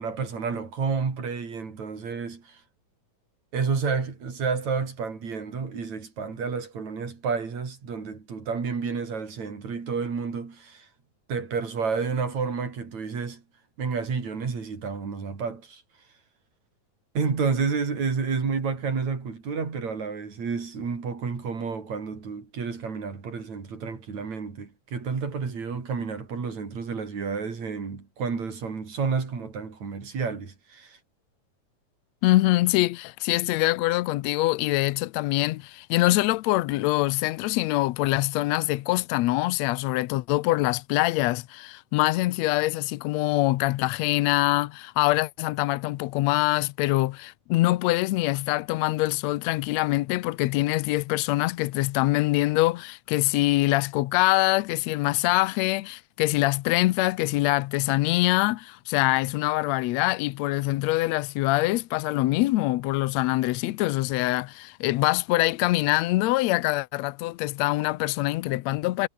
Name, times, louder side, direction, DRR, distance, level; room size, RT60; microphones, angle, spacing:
voice 1, 0.0-2.6 3.5-10.9 11.3-13.4 13.8-15.8 17.2-31.0, right 5 dB, 55° right, 5.4 m, -30 dB
voice 2, 32.2-69.1, left 18 dB, 85° left, 1.5 m, -24 dB
omnidirectional pair, 3.9 m